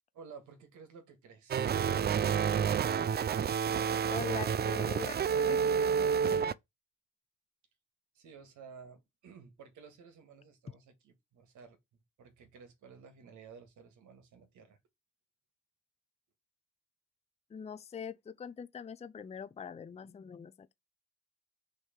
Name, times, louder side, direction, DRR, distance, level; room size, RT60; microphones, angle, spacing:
voice 1, 0.1-1.7 8.2-14.8, right 5 dB, 80° right, 1.8 m, -54 dB
sound 1, 1.5-6.5, right 7 dB, 35° right, 0.4 m, -29 dB
voice 2, 4.1-6.6 17.5-20.7, left 7 dB, 20° left, 0.5 m, -43 dB
6.4 x 3.0 x 5.7 m
cardioid pair, 90°, 30 cm